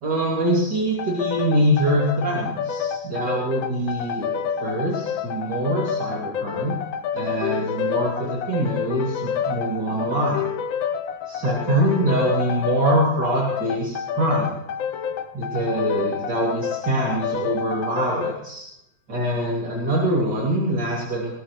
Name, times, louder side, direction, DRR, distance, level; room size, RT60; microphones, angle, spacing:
voice 1, 0.0-6.7 7.1-10.5 11.3-14.5 15.3-18.7 19.1-21.3, right 1 dB, 65° right, -4 dB, 3.3 m, -24 dB
sound 1, 1.0-18.4, left 8 dB, 85° left, 1.7 m, -28 dB
21.0 x 18.0 x 3.1 m, 0.84 s
omnidirectional pair, 2.0 m